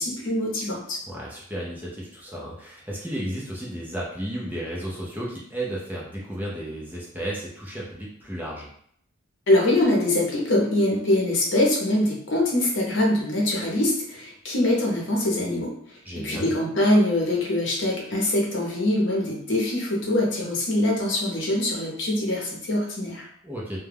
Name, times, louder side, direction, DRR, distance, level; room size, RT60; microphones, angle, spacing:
voice 1, 0.0-1.0 9.5-23.3, left 1 dB, 60° left, -2 dB, 0.8 m, -23 dB
voice 2, 1.1-8.7 16.1-16.5 23.4-23.8, right 1 dB, 10° right, -5 dB, 0.4 m, -33 dB
2.3 x 2.1 x 3.3 m, 0.67 s
head